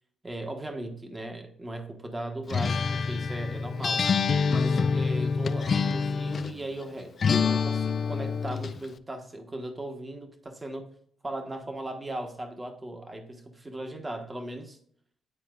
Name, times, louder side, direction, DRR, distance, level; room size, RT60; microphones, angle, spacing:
voice 1, 0.2-4.1 4.5-10.9 11.2-14.8, right 1 dB, 20° right, 1.2 m, -38 dB
Acoustic guitar, 2.5-6.6 7.2-8.8, left 5 dB, 45° left, 0.4 m, -26 dB
9.8 x 4.1 x 2.5 m
cardioid pair, 90°, 0 cm